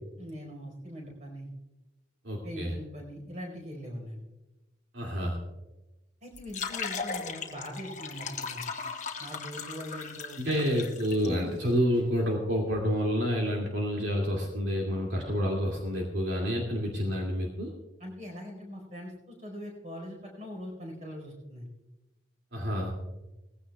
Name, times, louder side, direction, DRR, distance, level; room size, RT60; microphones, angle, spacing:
voice 1, 0.2-1.5 2.4-4.2 6.2-8.6 9.2-10.6 18.0-21.7, equal, 35° right, 1 dB, 4.6 m, -42 dB
voice 2, 2.2-2.7 4.9-5.4 10.4-17.7 22.5-22.9, equal, 70° right, -2 dB, 2.5 m, -29 dB
sound 1, 6.3-11.3, left 5 dB, 40° left, 1.1 m, -37 dB
20.0 x 15.5 x 2.4 m, 1.0 s
head